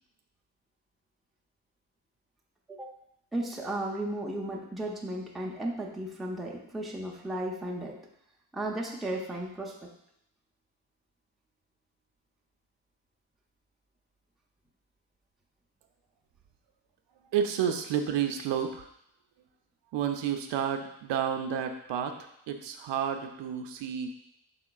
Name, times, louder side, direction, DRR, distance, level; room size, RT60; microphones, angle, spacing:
voice 1, 2.7-3.0 3.3-8.0 8.5-9.9, right 1 dB, ahead, -2 dB, 0.5 m, -35 dB
voice 2, 17.3-18.9 19.9-24.1, right 8 dB, 65° right, 5 dB, 0.5 m, -30 dB
4.9 x 3.5 x 2.3 m, 0.75 s
cardioid pair, 90°, 46 cm